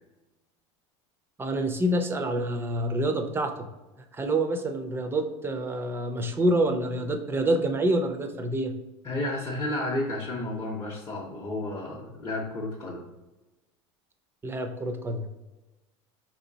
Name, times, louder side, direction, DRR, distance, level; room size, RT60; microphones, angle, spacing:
voice 1, 1.4-3.5 4.1-8.7 14.4-15.3, right 1 dB, 15° right, 6 dB, 0.5 m, -27 dB
voice 2, 9.0-13.0, left 1 dB, 20° left, -6 dB, 0.8 m, -32 dB
4.5 x 2.8 x 2.7 m, 1.1 s
supercardioid pair, 110°, 15 cm